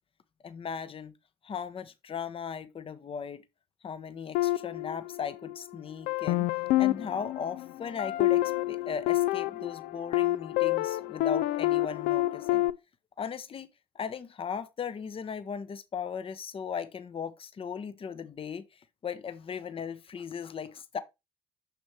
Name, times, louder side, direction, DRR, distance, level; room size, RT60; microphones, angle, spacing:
voice 1, 0.4-1.1 1.4-3.4 3.8-6.5 6.8-12.7 13.2-13.7 13.9-18.6 19.0-21.0, left 6 dB, 35° left, 0.8 m, -37 dB
sound 1, 4.3-5.6 6.1-12.7, left 16 dB, 65° left, 0.4 m, -28 dB
6.3 x 6.0 x 3.1 m
hypercardioid pair, 55°, 16 cm